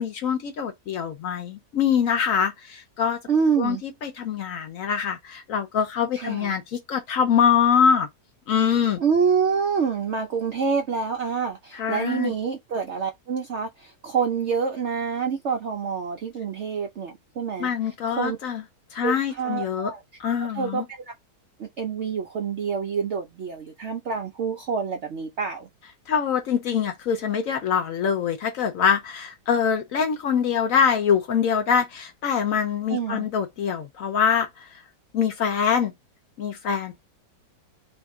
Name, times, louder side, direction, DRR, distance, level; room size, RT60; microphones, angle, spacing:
voice 1, 0.0-3.2 3.6-8.1 8.5-9.0 11.7-12.3 17.6-18.6 18.9-19.9 20.2-20.9 26.1-34.7 35.1-35.9 36.4-37.0, left 7 dB, 65° left, 0.8 m, -24 dB
voice 2, 3.3-3.8 6.1-6.5 9.0-17.7 18.1-18.4 19.0-20.0 20.5-21.1 21.6-25.7 32.9-33.3, right 6 dB, 70° right, 0.6 m, -27 dB
2.8 x 2.5 x 3.5 m
omnidirectional pair, 1.9 m